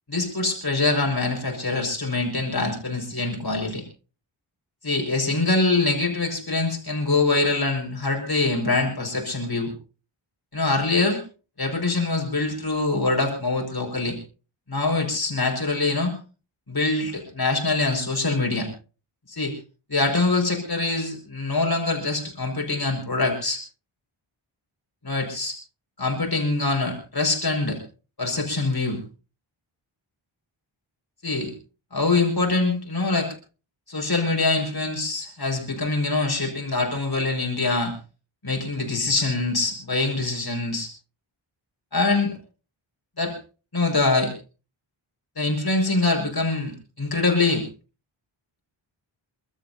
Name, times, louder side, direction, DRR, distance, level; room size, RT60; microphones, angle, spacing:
voice 1, 0.1-3.8 4.8-9.7 10.5-11.2 11.6-14.2 14.7-16.1 16.7-18.7 19.3-19.5 19.9-23.6 25.0-25.6 26.0-27.8 28.2-29.0 31.2-31.5 31.9-33.3 33.9-37.9 38.4-40.9 41.9-42.4 43.2-43.3 43.7-44.3 45.4-46.7 47.0-47.6, left 3 dB, 45° left, 2 dB, 5.2 m, -24 dB
29.0 x 13.0 x 2.7 m, 0.34 s
wide cardioid pair, 80°, 50 cm